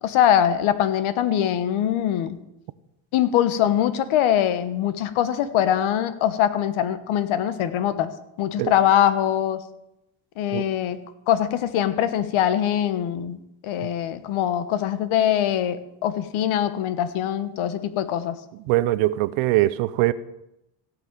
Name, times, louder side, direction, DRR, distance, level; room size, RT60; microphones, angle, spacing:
voice 1, 0.0-2.4 3.1-8.1 8.4-9.6 10.4-11.0 11.3-13.4 13.6-18.3, left 10 dB, 75° left, 1.4 m, -22 dB
voice 2, 18.6-20.1, right 17 dB, 85° right, 0.8 m, -21 dB
16.5 x 6.2 x 7.5 m
cardioid pair, 95°, 50 cm